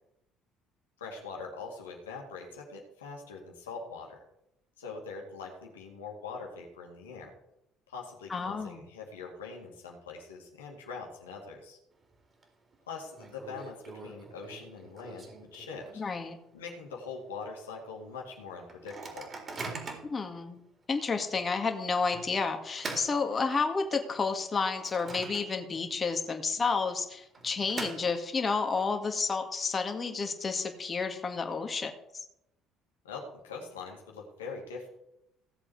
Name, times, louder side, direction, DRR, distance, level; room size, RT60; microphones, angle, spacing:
voice 1, 1.0-4.2 4.8-7.3 7.9-11.8 12.9-16.0 16.5-19.3 33.0-34.9, left 4 dB, 85° left, 0 dB, 2.2 m, -43 dB
voice 2, 8.3-8.8 16.0-16.4 20.0-20.6 20.9-31.9, left 4 dB, 35° left, 5 dB, 2.0 m, -31 dB
Microwave oven, 11.9-12.4 12.7-12.8 13.1-16.2 16.7-16.8 17.0-17.3 17.9-18.0 18.7-20.2 20.8-21.0 22.1-23.9 24.4-25.9 26.1-26.2 27.1-28.5, right 3 dB, 35° right, 4.0 m, -43 dB
16.5 x 7.6 x 4.8 m, 0.83 s
hypercardioid pair, 55°, 0 cm